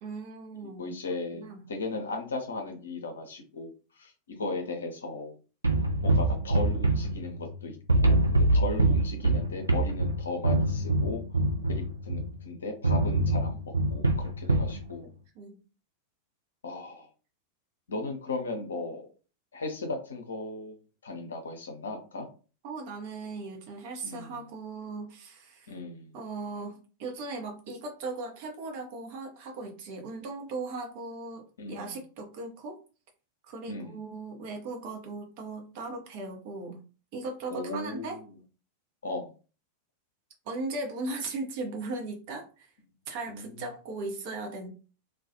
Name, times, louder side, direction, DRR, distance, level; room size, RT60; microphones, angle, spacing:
voice 1, 0.0-1.0 1.3-1.7 15.4-15.6 22.6-25.8 26.1-32.8 33.4-36.8 37.1-38.2 40.4-42.7 43.1-44.7, right 3 dB, 50° right, 3 dB, 0.7 m, -38 dB
voice 2, 0.6-5.4 6.0-11.2 11.7-15.1 16.6-17.1 17.9-19.1 19.5-20.8 21.0-22.3 24.0-24.4 25.7-26.1 31.6-31.9 33.7-34.0 37.5-38.4 39.0-39.3 43.3-43.6, left 3 dB, 70° left, 4 dB, 0.6 m, -36 dB
sound 1, 5.6-7.6 7.9-12.4 12.8-14.8, right 2 dB, 80° right, 0.4 m, -25 dB
2.3 x 2.2 x 2.7 m, 0.35 s
figure-of-eight pair, 90°, 0 cm